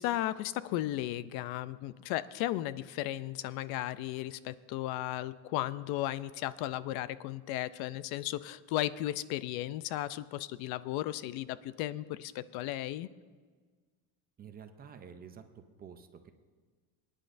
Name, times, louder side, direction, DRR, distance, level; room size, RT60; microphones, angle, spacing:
voice 1, 0.0-13.1, left 14 dB, 65° left, 16 dB, 0.5 m, -35 dB
voice 2, 14.4-16.3, right 7 dB, 25° right, 7 dB, 0.5 m, -50 dB
23.5 x 9.9 x 2.6 m, 1.5 s
cardioid pair, 170°, 40 cm